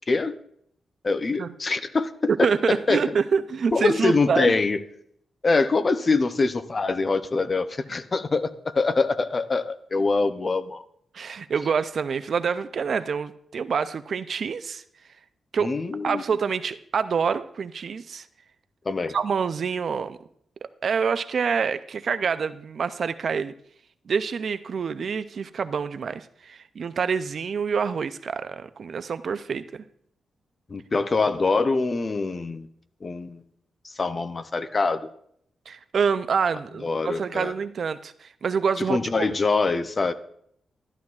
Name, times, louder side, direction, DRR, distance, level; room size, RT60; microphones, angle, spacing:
voice 1, 1.0-3.1 3.7-4.8 5.4-10.8 15.6-16.2 18.9-19.1 30.7-32.7 33.0-33.4 33.8-35.1 36.8-37.5 38.9-40.1, left 3 dB, 30° left, 11 dB, 0.5 m, -24 dB
voice 2, 2.3-4.6 11.1-14.8 15.5-15.7 16.0-18.3 19.1-20.2 20.8-23.5 24.1-29.8 35.7-39.3, right 6 dB, 50° right, 12 dB, 0.4 m, -26 dB
12.5 x 11.5 x 2.4 m, 0.69 s
wide cardioid pair, 155°, 0 cm